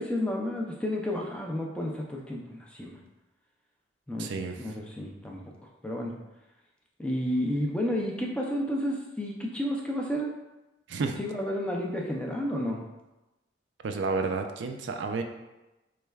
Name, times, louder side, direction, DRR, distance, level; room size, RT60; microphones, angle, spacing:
voice 1, 0.0-3.0 4.1-4.3 4.6-5.4 5.8-6.2 7.0-10.4 11.2-12.8, left 1 dB, 5° left, -1 dB, 0.4 m, -31 dB
voice 2, 4.2-4.6 10.9-11.2 13.8-15.2, right 4 dB, 70° right, 5 dB, 0.3 m, -30 dB
4.2 x 3.2 x 2.3 m, 1.0 s
head